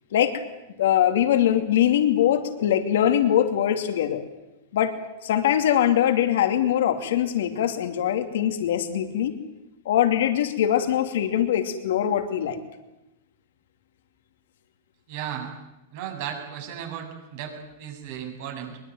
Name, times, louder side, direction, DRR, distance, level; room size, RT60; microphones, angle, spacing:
voice 1, 0.8-4.2 4.7-5.0 5.2-9.4 9.8-12.6, left 10 dB, 80° left, 7 dB, 2.7 m, -22 dB
voice 2, 15.1-15.5 15.9-18.8, right 9 dB, 60° right, 3 dB, 7.4 m, -35 dB
22.0 x 21.5 x 9.3 m, 0.94 s
supercardioid pair, 130°, 0 cm